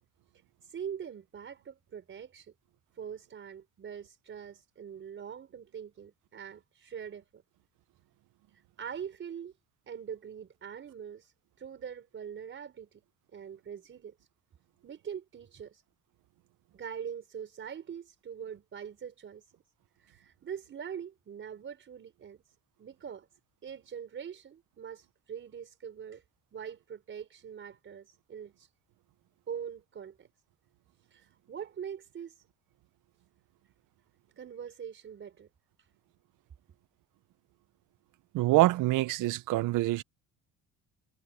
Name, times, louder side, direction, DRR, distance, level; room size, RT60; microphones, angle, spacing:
voice 1, 0.6-2.5 3.0-7.4 8.8-9.5 9.9-11.3 11.6-13.0 13.3-14.1 14.8-15.8 16.7-19.4 20.0-22.4 22.8-23.3 23.6-26.2 26.5-28.7 29.5-30.3 31.1-32.4 34.4-35.5, right 8 dB, 35° right, 4.6 m, -43 dB
voice 2, 38.3-40.0, right 18 dB, 60° right, 0.7 m, -25 dB
cardioid pair, 150°, 35 cm